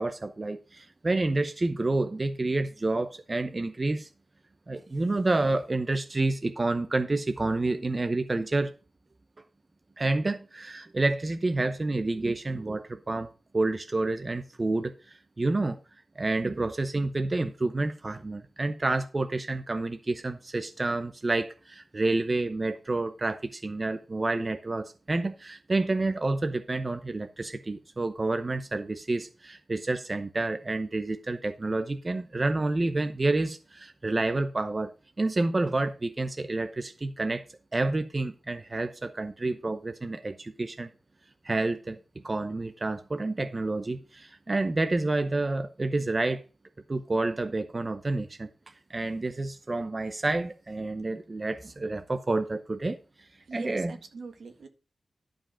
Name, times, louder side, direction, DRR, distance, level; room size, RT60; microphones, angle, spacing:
voice 1, 0.0-4.1 4.7-8.7 10.0-13.3 13.5-14.9 15.4-15.8 16.2-34.9 35.2-37.4 37.7-40.9 41.4-42.0 42.2-46.4 46.9-48.5 48.9-53.0 53.5-53.9, right 2 dB, 30° right, 0.7 m, -29 dB
voice 2, 53.5-54.7, right 4 dB, 80° right, 1.6 m, -42 dB
11.5 x 5.2 x 5.6 m
wide cardioid pair, 125°, 0 cm